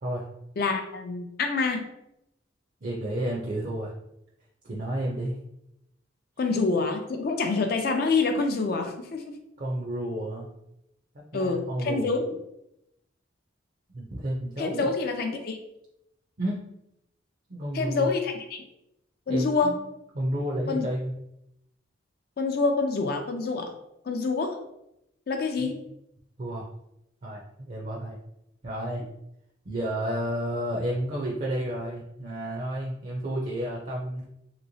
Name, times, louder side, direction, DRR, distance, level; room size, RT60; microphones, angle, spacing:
voice 1, 0.6-1.8 6.4-9.3 11.3-12.2 14.6-15.6 17.7-18.6 19.3-19.8 20.7-20.8 22.4-23.7 24.1-24.6 25.3-25.8, left 4 dB, 50° left, 5 dB, 0.4 m, -26 dB
voice 2, 2.8-3.9 4.6-5.4 9.6-10.5 11.3-12.1 13.9-14.9 16.4-16.6 17.5-18.1 19.3-19.8 20.1-21.1 25.6-25.8 26.4-26.7 27.2-28.2 28.6-29.0 29.6-34.2, right 1 dB, 45° right, -3 dB, 0.5 m, -31 dB
3.0 x 2.9 x 2.6 m, 0.83 s
head